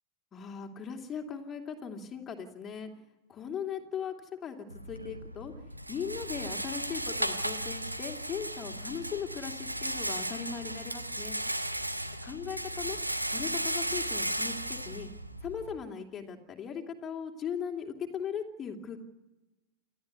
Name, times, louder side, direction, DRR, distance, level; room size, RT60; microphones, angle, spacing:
voice 1, 0.3-2.9 3.3-5.5 5.9-11.4 12.2-13.0 13.3-15.1 15.4-19.0, left 7 dB, 25° left, 3 dB, 2.9 m, -38 dB
Rattle, 4.7-15.7, right 1 dB, 85° right, 1.2 m, -35 dB
29.0 x 13.0 x 9.4 m, 1.0 s
figure-of-eight pair, 90°, 0 cm